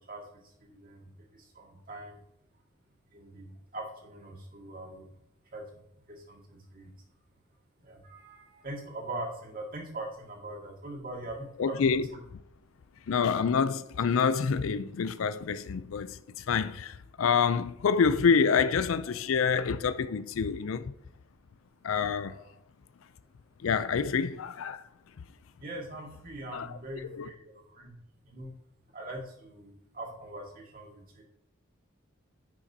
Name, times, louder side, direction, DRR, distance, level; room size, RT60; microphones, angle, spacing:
voice 1, 0.6-1.1 1.3-2.2 3.1-5.1 5.5-5.6 6.1-6.9 7.8-12.2 22.2-22.5 25.6-27.9 28.2-28.5 28.9-31.2, right 1 dB, 45° right, 1.9 m, -42 dB
voice 2, 11.6-12.0 13.1-20.9 21.8-22.4 23.6-24.9 26.5-26.7 27.1-27.3, left 6 dB, 75° left, 0.4 m, -27 dB
9.8 x 5.8 x 2.8 m
head